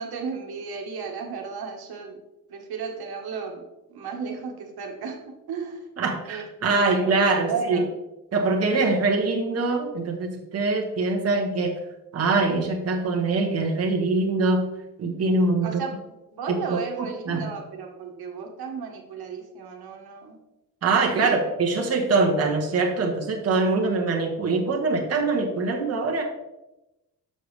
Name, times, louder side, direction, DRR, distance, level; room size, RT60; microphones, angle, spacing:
voice 1, 0.0-2.2 2.5-5.9 6.3-7.9 15.6-16.0 16.3-20.4 21.2-21.3, right 5 dB, 85° right, 1 dB, 1.3 m, -34 dB
voice 2, 6.0-7.8 8.3-11.7 12.1-14.7 15.0-15.8 16.7-17.5 20.8-26.2, right 3 dB, 40° right, 0 dB, 1.1 m, -23 dB
6.8 x 6.5 x 3.2 m, 0.96 s
wide cardioid pair, 180°, 37 cm